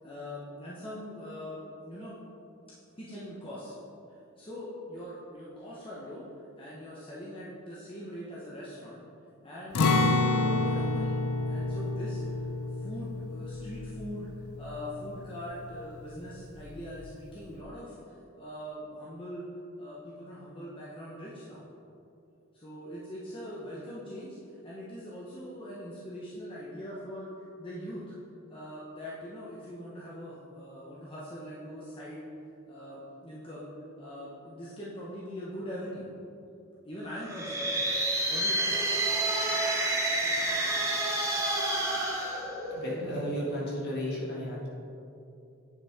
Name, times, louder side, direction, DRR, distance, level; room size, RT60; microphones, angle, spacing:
voice 1, 0.0-2.2 3.0-3.8 4.4-6.3 6.6-9.0 9.4-11.1 11.5-19.5 19.8-21.6 22.5-28.0 28.5-32.3 32.7-33.7 34.0-36.1 36.8-37.9 38.2-38.7, equal, 25° left, -7 dB, 0.9 m, -42 dB
Acoustic guitar, 9.7-15.6 16.0-16.1 16.6-17.1, left 3 dB, 90° left, 0.6 m, -29 dB
sound 1, 37.2-43.1, right 1 dB, 15° right, 0.9 m, -29 dB
voice 2, 42.7-44.7, equal, 50° left, -5 dB, 1.8 m, -33 dB
9.7 x 5.9 x 3.6 m, 2.7 s
head